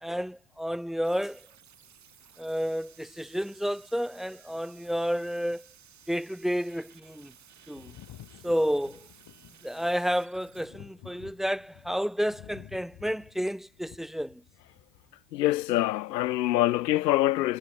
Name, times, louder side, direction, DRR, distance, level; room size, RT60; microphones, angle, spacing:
voice 1, 0.0-1.4 2.4-5.7 6.1-7.3 7.7-7.9 8.4-9.1 9.6-14.4, equal, ahead, 2.0 m, -30 dB
sound 1, 1.0-10.7, right 9 dB, 35° right, 4.0 m, -57 dB
Thunder, 7.7-15.1 16.2-16.3, left 13 dB, 45° left, 3.8 m, -51 dB
voice 2, 15.3-17.6, left 15 dB, 75° left, 0.7 m, -25 dB
figure-of-eight pair, 65°, 50 cm